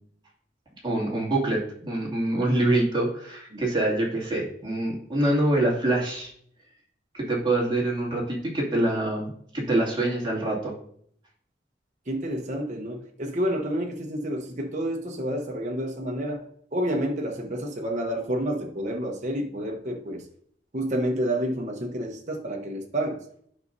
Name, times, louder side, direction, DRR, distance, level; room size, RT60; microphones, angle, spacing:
voice 1, 0.8-6.3 7.1-10.7, right 1 dB, 25° right, -4 dB, 2.4 m, -25 dB
voice 2, 12.1-16.4 16.7-20.2 20.7-23.2, right 1 dB, 40° right, 1 dB, 0.9 m, -29 dB
11.5 x 5.4 x 2.7 m, 0.64 s
head